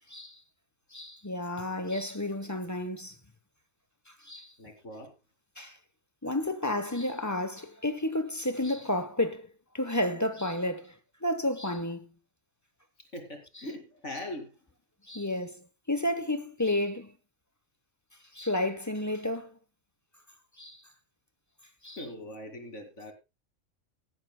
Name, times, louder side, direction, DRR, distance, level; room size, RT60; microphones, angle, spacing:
voice 1, 0.9-3.2 4.2-4.5 5.6-5.8 6.2-9.5 9.7-12.1 15.1-15.6 15.9-17.1 18.3-19.6 20.6-20.8 21.8-22.0, left 1 dB, 15° left, 0.9 m, -31 dB
voice 2, 4.6-5.1 13.0-14.6 22.0-23.1, left 1 dB, 70° left, 2.8 m, -41 dB
17.5 x 11.5 x 2.2 m
omnidirectional pair, 1.3 m